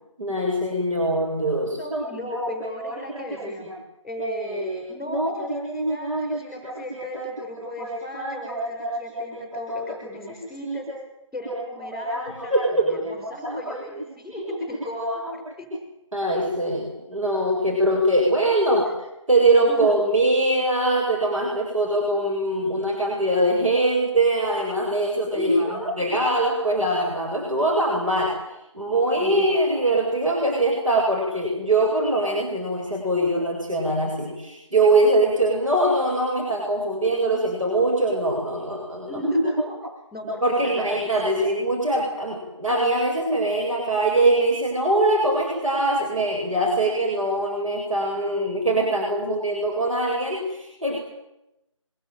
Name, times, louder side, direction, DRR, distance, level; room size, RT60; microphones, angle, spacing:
voice 1, 0.2-1.8 12.5-12.8 16.1-18.9 19.3-28.3 28.7-39.2 40.4-51.0, right 1 dB, 80° right, -1 dB, 8.0 m, -22 dB
voice 2, 1.8-3.7 4.0-10.9 11.3-15.7 18.9-19.0 19.7-19.9 25.3-26.1 29.2-29.3 39.0-39.8 40.1-41.4, equal, ahead, -4 dB, 5.9 m, -30 dB
24.5 x 21.5 x 9.3 m, 0.92 s
figure-of-eight pair, 165°, 17 cm